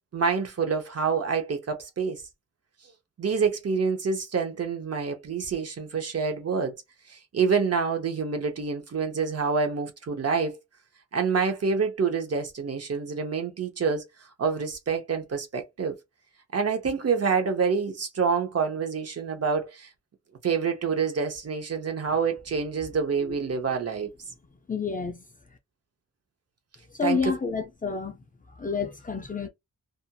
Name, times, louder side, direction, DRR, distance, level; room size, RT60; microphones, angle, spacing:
voice 1, 0.1-2.2 3.2-6.8 7.1-10.6 11.1-14.1 14.4-16.0 16.5-19.9 20.4-24.1 27.0-27.3, right 5 dB, 50° right, 0.7 m, -27 dB
voice 2, 24.7-25.2 26.9-28.2 28.6-29.5, left 5 dB, 25° left, 0.4 m, -29 dB
2.8 x 2.4 x 2.2 m
wide cardioid pair, 150°, 32 cm